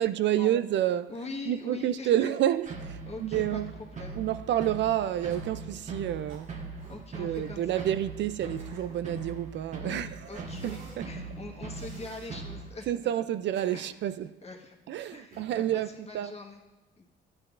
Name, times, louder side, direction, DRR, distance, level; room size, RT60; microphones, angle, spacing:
voice 1, 0.0-1.1 1.5-3.7 4.2-6.5 7.2-11.1 12.9-14.4 14.9-15.9 16.1-16.3, right 11 dB, 65° right, 0.4 m, -29 dB
voice 2, 1.1-2.3 3.1-4.2 6.9-7.7 9.8-10.8 11.0-12.9 13.7-13.8 14.4-14.7 15.1-16.6 17.0-17.1, left 3 dB, 30° left, 1.4 m, -42 dB
sound 1, 2.6-12.7, right 3 dB, 35° right, 1.3 m, -41 dB
Cough, 5.3-5.7 6.3-7.0 7.3-7.6 8.3-9.5 10.4-11.0 11.7-12.3 13.3-14.1 15.3-15.8, right 3 dB, 85° right, 1.9 m, -52 dB
11.5 x 8.6 x 2.5 m
cardioid pair, 90°, 20 cm